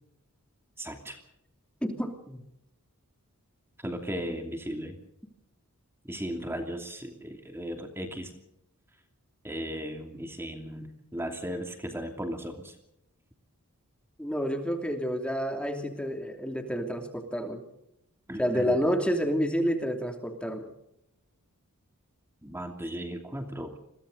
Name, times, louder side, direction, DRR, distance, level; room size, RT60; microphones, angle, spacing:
voice 1, 0.8-1.2 3.8-5.0 6.1-8.3 9.4-12.7 18.3-18.8 22.4-23.8, equal, 10° right, 4 dB, 2.8 m, -36 dB
voice 2, 1.8-2.4 14.2-17.6 18.4-20.7, equal, 5° left, 4 dB, 2.8 m, -29 dB
30.0 x 22.5 x 4.0 m, 0.81 s
head